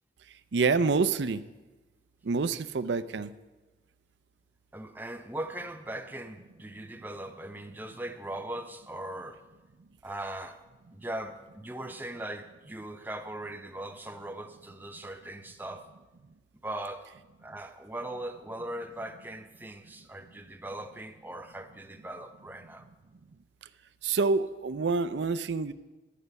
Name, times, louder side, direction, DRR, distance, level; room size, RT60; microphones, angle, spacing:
voice 1, 0.5-1.4 2.2-3.3 24.0-25.7, right 4 dB, 75° right, 13 dB, 0.5 m, -27 dB
voice 2, 4.7-9.4 10.0-10.6 10.9-15.9 16.6-17.1 17.4-22.9, right 1 dB, 10° right, 7 dB, 0.5 m, -39 dB
11.0 x 10.0 x 5.3 m, 1.2 s
head